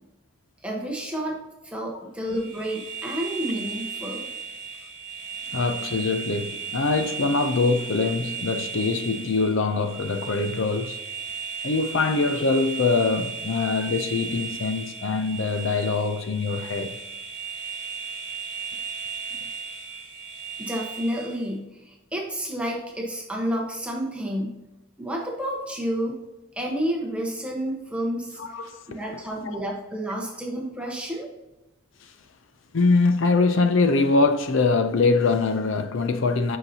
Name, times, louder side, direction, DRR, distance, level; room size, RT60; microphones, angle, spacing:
voice 1, 0.6-1.4 1.6-4.3 20.6-24.6 25.0-26.2 26.5-28.4 28.9-31.3, equal, 5° right, 1.0 m, -30 dB
sound 1, 2.3-21.5, right 6 dB, 20° left, 2.0 m, -35 dB
voice 2, 5.5-11.0 11.6-17.0 28.4-29.0 29.4-29.6 32.0-32.1 32.7-36.6, left 3 dB, 65° left, 0.5 m, -23 dB
7.9 x 5.7 x 2.8 m
head